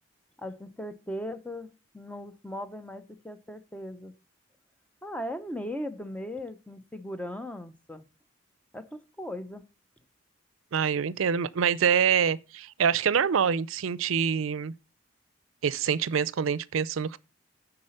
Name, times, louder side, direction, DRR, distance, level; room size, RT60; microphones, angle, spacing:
voice 1, 0.4-1.7 1.9-4.1 5.0-8.1 8.7-9.6, equal, 5° left, 0.7 m, -38 dB
voice 2, 10.7-14.7 15.6-17.2, right 7 dB, 90° right, 0.5 m, -25 dB
9.9 x 4.0 x 6.5 m
head